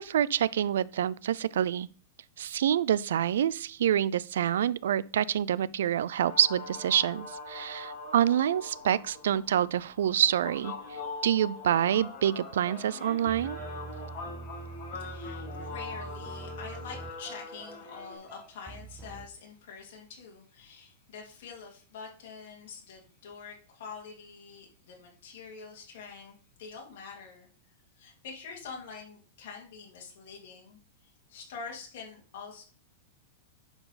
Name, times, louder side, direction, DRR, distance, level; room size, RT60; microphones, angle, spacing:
voice 1, 0.0-1.9 2.4-10.7 11.2-13.6, right 10 dB, 75° right, 0.4 m, -27 dB
sound 1, 6.2-18.2, left 3 dB, 20° left, 4.9 m, -42 dB
sound 2, 12.0-19.3, right 3 dB, 5° right, 0.4 m, -45 dB
voice 2, 14.9-27.5 28.0-32.6, left 5 dB, 50° left, 2.6 m, -46 dB
10.5 x 4.6 x 4.1 m
supercardioid pair, 175°, 0 cm